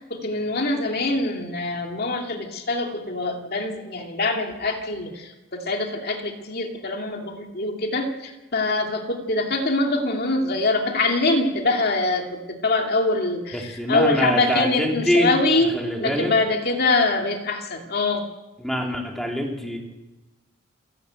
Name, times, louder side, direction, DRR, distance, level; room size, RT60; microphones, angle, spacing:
voice 1, 0.1-18.3, left 2 dB, 50° left, 2 dB, 2.5 m, -24 dB
voice 2, 13.5-15.3 15.6-16.3 18.6-19.8, equal, ahead, 0 dB, 3.5 m, -25 dB
28.0 x 13.5 x 8.9 m, 1.1 s
head